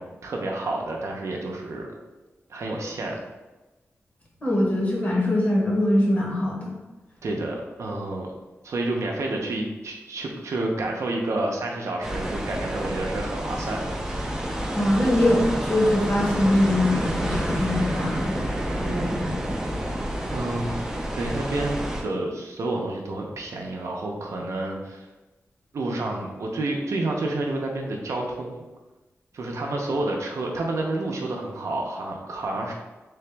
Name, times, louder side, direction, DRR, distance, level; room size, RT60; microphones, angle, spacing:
voice 1, 0.0-1.9 2.5-3.2 7.2-8.3 8.6-14.4 20.3-20.8 21.1-25.0 25.7-28.6 29.3-32.7, right 2 dB, 70° right, 0 dB, 0.6 m, -29 dB
voice 2, 4.4-6.7 14.7-18.4 18.8-19.5, left 1 dB, 30° left, -3 dB, 0.9 m, -23 dB
sound 1, 12.0-22.0, right 1 dB, 10° right, 0.4 m, -29 dB
3.4 x 2.9 x 3.3 m, 1.1 s
wide cardioid pair, 145°, 5 cm